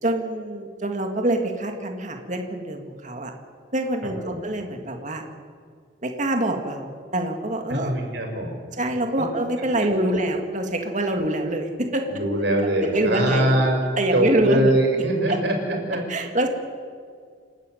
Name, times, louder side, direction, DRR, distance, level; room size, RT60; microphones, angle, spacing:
voice 1, 0.0-3.3 3.7-5.2 6.0-7.9 8.8-12.0 12.6-13.6 14.0-14.7 15.3-15.4 16.1-16.5, right 1 dB, 45° right, 3 dB, 2.3 m, -25 dB
voice 2, 7.7-8.6 9.6-9.9 12.1-13.8 14.1-16.0, right 1 dB, 75° right, 2 dB, 6.0 m, -23 dB
28.5 x 12.0 x 9.4 m, 2.1 s
head